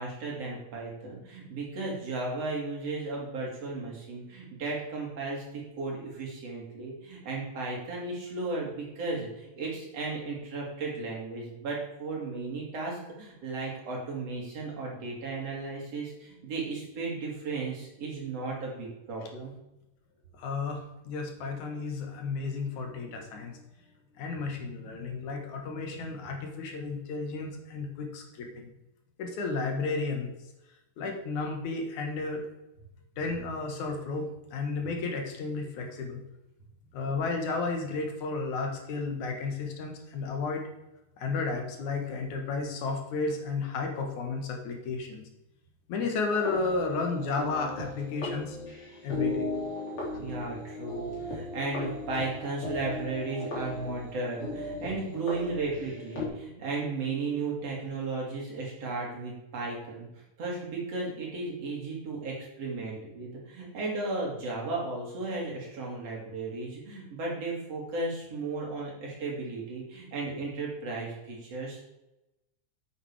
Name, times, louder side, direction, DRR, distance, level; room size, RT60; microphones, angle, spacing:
voice 1, 0.0-19.5 50.2-60.1 60.4-71.8, right 3 dB, 55° right, -3 dB, 3.7 m, -35 dB
voice 2, 20.3-23.6 24.2-28.7 29.2-30.3 31.0-32.4 33.2-36.2 36.9-40.6 41.2-45.2 45.9-48.6 49.0-49.5 50.1-50.2, left 4 dB, 80° left, 3 dB, 2.9 m, -33 dB
sound 1, 46.3-56.3, left 2 dB, 45° left, 4.2 m, -37 dB
8.7 x 8.6 x 4.9 m, 0.91 s
omnidirectional pair, 3.4 m